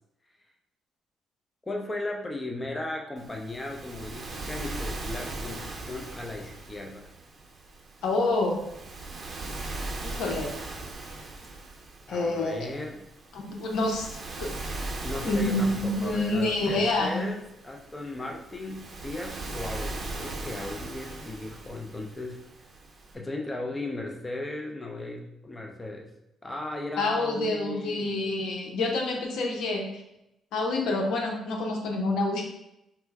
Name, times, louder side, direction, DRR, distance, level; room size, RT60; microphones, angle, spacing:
voice 1, 1.7-7.1 12.1-13.0 15.0-22.5 23.1-26.1 26.4-28.2, left 2 dB, 20° left, 1 dB, 0.5 m, -36 dB
Waves surf, 3.2-23.2, right 2 dB, 45° right, 0.7 m, -39 dB
voice 2, 8.0-8.6 10.0-10.5 12.1-12.7 13.3-14.1 14.4-14.5 15.2-17.2 27.0-29.9 30.5-32.4, left 2 dB, 80° left, 1 dB, 0.7 m, -27 dB
4.4 x 2.1 x 3.4 m, 0.85 s
cardioid pair, 90°, 0 cm